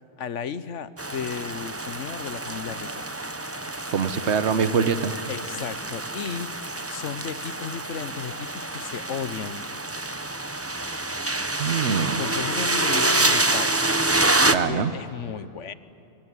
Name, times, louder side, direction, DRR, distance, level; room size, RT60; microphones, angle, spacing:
voice 1, 0.2-3.1 5.3-6.5 6.9-9.7 12.2-13.7 14.6-15.7, left 7 dB, 80° left, 15 dB, 1.3 m, -34 dB
sound 1, 1.0-14.5, right 2 dB, 15° right, 0.8 m, -27 dB
voice 2, 3.9-5.1 11.6-12.2 14.5-14.9, right 6 dB, 65° right, 13 dB, 1.3 m, -24 dB
25.0 x 23.5 x 9.9 m, 2.8 s
omnidirectional pair, 1.2 m